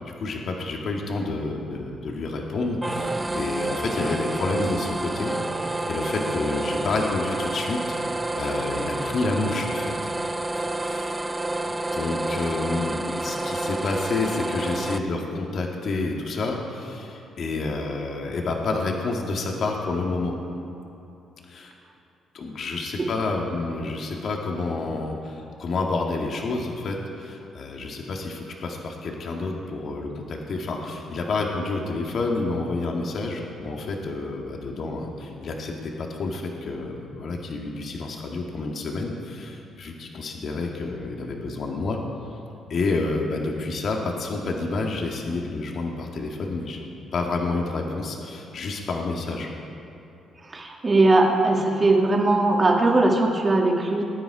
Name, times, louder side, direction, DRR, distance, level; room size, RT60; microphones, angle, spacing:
voice 1, 0.0-9.9 10.2-11.2 11.7-20.4 21.5-21.7 22.3-42.0 42.7-46.8 47.1-49.5, left 3 dB, 60° left, 0 dB, 1.8 m, -29 dB
sound 1, 2.8-15.0, right 2 dB, 15° right, 0.6 m, -29 dB
voice 2, 50.5-54.0, right 2 dB, 30° right, 1 dB, 2.1 m, -20 dB
20.0 x 9.6 x 4.8 m, 2.9 s
cardioid pair, 90°, 0 cm